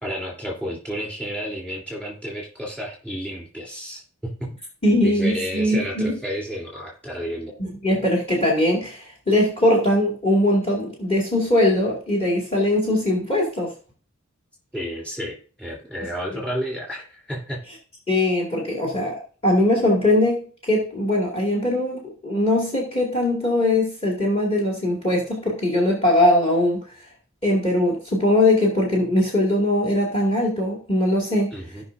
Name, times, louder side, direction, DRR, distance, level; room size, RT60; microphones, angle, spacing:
voice 1, 0.0-4.6 5.0-7.5 14.7-17.6 31.5-31.8, equal, 5° left, -3 dB, 3.2 m, -31 dB
voice 2, 4.8-6.2 7.6-13.7 18.1-26.8 27.4-31.5, left 1 dB, 25° left, -4 dB, 2.3 m, -21 dB
17.0 x 5.6 x 2.6 m, 0.39 s
head